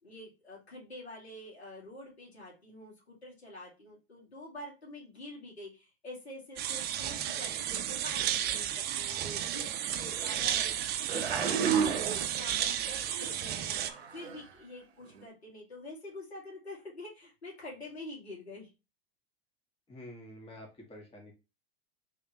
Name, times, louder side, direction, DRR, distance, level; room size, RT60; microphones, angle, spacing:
voice 1, 0.0-9.7 9.9-11.9 12.2-18.7, left 1 dB, 85° left, -3 dB, 2.3 m, -47 dB
sound 1, 6.6-13.9, right 10 dB, 30° right, 0.6 m, -33 dB
sound 2, 9.2-9.4 10.1-10.7 11.1-12.7 13.1-13.3 13.7-14.4 15.1-15.2, right 7 dB, 80° right, 0.7 m, -33 dB
voice 2, 19.9-21.3, left 1 dB, 15° left, 0 dB, 1.5 m, -48 dB
3.9 x 3.3 x 3.0 m, 0.28 s
figure-of-eight pair, 90°, 31 cm